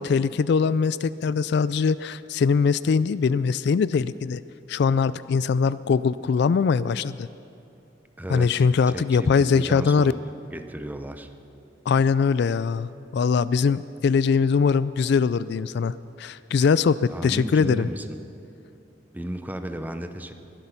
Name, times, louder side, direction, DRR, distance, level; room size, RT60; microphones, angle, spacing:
voice 1, 0.0-4.4 4.7-7.3 8.3-10.1 11.9-17.9, left 5 dB, 65° left, 16 dB, 0.3 m, -22 dB
voice 2, 8.2-10.2 10.5-11.3 17.1-18.2 19.1-20.3, right 1 dB, 10° right, 8 dB, 0.7 m, -34 dB
21.5 x 11.0 x 5.8 m, 2.7 s
head